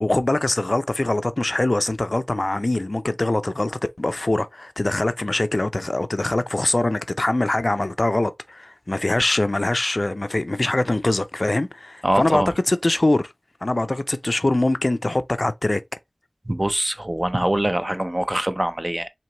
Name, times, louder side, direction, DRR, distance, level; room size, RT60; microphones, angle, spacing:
voice 1, 0.0-13.3 13.6-15.8, left 2 dB, 50° left, 0.4 m, -23 dB
voice 2, 12.0-12.5 16.5-19.1, right 1 dB, 30° right, 0.6 m, -23 dB
4.5 x 2.9 x 2.9 m
wide cardioid pair, 45°, 0 cm